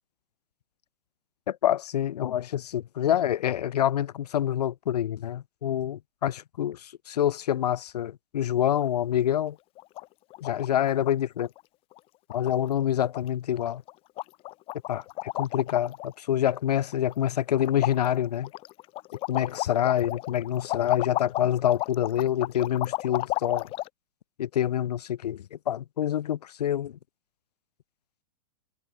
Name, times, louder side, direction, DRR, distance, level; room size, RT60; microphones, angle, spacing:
voice 1, 1.5-9.6 10.4-11.5 12.3-13.8 14.9-18.5 19.3-23.7 24.4-26.9, left 11 dB, 75° left, 1.3 m, -27 dB
sound 1, 8.7-9.1 9.4-9.5 9.8-10.1 10.3-11.1 11.4-11.6 11.9-12.0 12.3-12.8 13.1-13.3 13.6-13.9 14.2-16.1 16.5-17.3 17.6-23.9, left 18 dB, 25° left, 1.2 m, -33 dB
hypercardioid pair, 145°, 20 cm